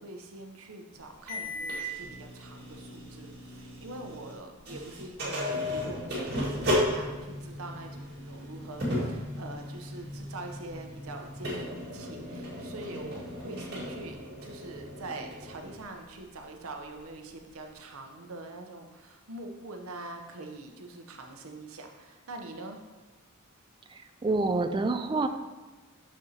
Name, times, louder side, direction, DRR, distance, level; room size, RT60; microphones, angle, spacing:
voice 1, 0.0-7.9 8.3-22.8, right 2 dB, 80° right, 4 dB, 0.8 m, -44 dB
sound 1, 1.3-4.4 4.6-15.8, left 1 dB, 50° right, 1.9 m, -35 dB
voice 2, 24.2-25.3, right 3 dB, 20° right, 8 dB, 0.3 m, -26 dB
6.6 x 6.3 x 2.8 m, 1.2 s
head